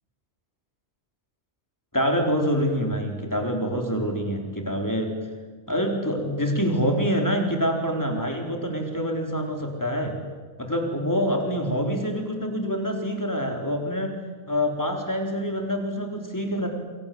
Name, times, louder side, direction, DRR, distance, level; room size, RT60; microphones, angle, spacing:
voice 1, 1.9-5.2 5.7-10.2 10.6-14.2 14.5-16.7, equal, 15° left, 2 dB, 4.2 m, -26 dB
28.5 x 23.5 x 7.9 m, 1.4 s
omnidirectional pair, 1.2 m